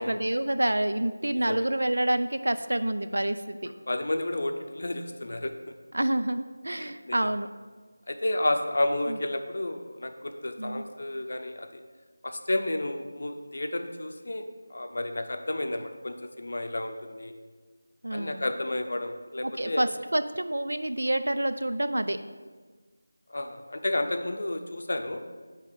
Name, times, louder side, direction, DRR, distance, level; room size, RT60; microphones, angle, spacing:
voice 1, 0.0-3.6 5.9-7.5 9.1-9.2 10.6-10.8 18.0-18.4 19.4-22.2, right 1 dB, 80° right, 10 dB, 0.4 m, -28 dB
voice 2, 3.9-5.5 6.7-7.2 8.1-11.8 12.2-14.4 14.7-17.3 18.1-19.8 23.3-25.2, left 1 dB, 60° left, 6 dB, 0.6 m, -31 dB
8.2 x 3.0 x 4.8 m, 1.4 s
figure-of-eight pair, 165°, 0 cm